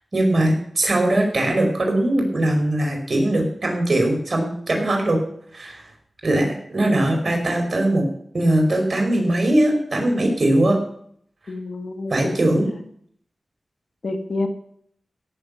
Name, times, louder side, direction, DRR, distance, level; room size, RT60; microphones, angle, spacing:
voice 1, 0.1-5.2 5.5-5.8 6.2-8.0 8.3-10.8 12.1-12.7, right 1 dB, 55° right, 2 dB, 5.3 m, -20 dB
voice 2, 11.5-12.8 14.0-14.5, left 2 dB, 70° left, 5 dB, 2.0 m, -29 dB
17.0 x 7.4 x 7.1 m, 0.66 s
cardioid pair, 45°, 0 cm